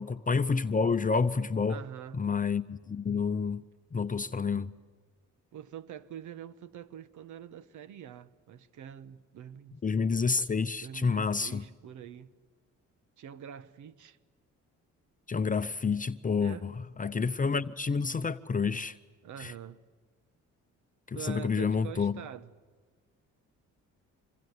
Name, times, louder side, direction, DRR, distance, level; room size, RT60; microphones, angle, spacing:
voice 1, 0.0-1.8 2.2-3.6 3.9-4.7 9.8-11.6 15.3-16.7 17.0-19.0 19.4-19.5 21.1-22.1, left 5 dB, 25° left, 0.8 m, -29 dB
voice 2, 1.7-2.2 5.5-9.8 10.8-12.3 13.2-14.2 16.3-16.7 19.2-19.8 21.1-22.5, right 9 dB, 75° right, 1.3 m, -45 dB
26.5 x 23.0 x 9.6 m
cardioid pair, 90°, 30 cm